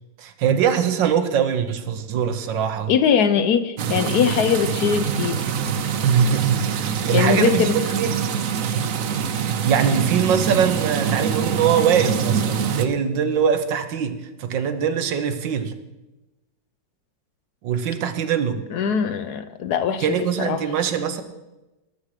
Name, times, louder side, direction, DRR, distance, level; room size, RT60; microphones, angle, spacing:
voice 1, 0.2-2.9 6.0-8.3 9.6-15.7 17.6-18.6 20.0-21.2, right 7 dB, 85° right, 9 dB, 1.6 m, -22 dB
voice 2, 2.9-5.4 7.1-7.7 18.7-20.0 20.4-20.6, left 7 dB, 65° left, 11 dB, 1.1 m, -21 dB
sound 1, 3.8-12.9, right 7 dB, 60° right, 1.0 m, -24 dB
19.0 x 7.4 x 4.9 m, 1.0 s
omnidirectional pair, 2.0 m